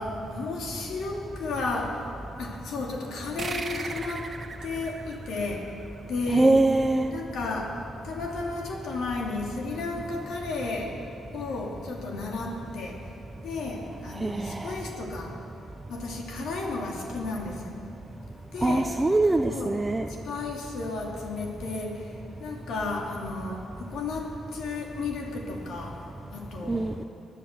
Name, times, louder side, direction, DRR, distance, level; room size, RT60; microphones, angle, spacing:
voice 1, 0.0-2.1 2.4-4.3 4.6-5.8 6.1-6.7 7.1-11.0 11.3-13.1 13.4-15.4 15.9-17.7 18.5-19.0 19.5-19.8 20.2-26.9, left 3 dB, 75° left, -1 dB, 2.7 m, -33 dB
sound 1, 3.4-6.4, right 4 dB, 35° right, 1.3 m, -38 dB
voice 2, 6.3-7.1 14.2-14.7 18.6-20.1 26.7-27.0, right 2 dB, 15° right, 5 dB, 0.6 m, -23 dB
20.0 x 11.0 x 6.7 m, 2.9 s
cardioid pair, 90°, 0 cm